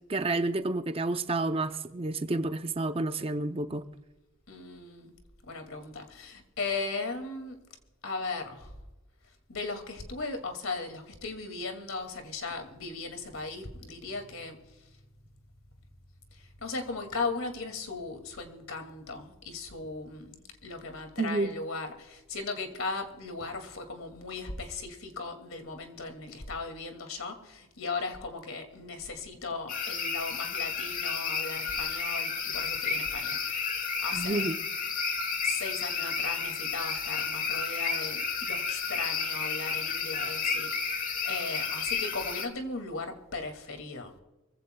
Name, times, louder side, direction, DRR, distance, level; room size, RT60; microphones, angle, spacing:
voice 1, 0.1-3.8 21.2-21.5 34.1-34.6, right 2 dB, 25° right, 0.6 m, -30 dB
voice 2, 4.5-5.1 5.5-7.6 8.0-8.7 9.5-14.8 16.3-33.7 34.0-34.5 35.4-44.1, left 3 dB, 80° left, 2.4 m, -37 dB
sound 1, 29.7-42.5, left 5 dB, 40° left, 1.3 m, -32 dB
24.5 x 15.5 x 2.3 m
head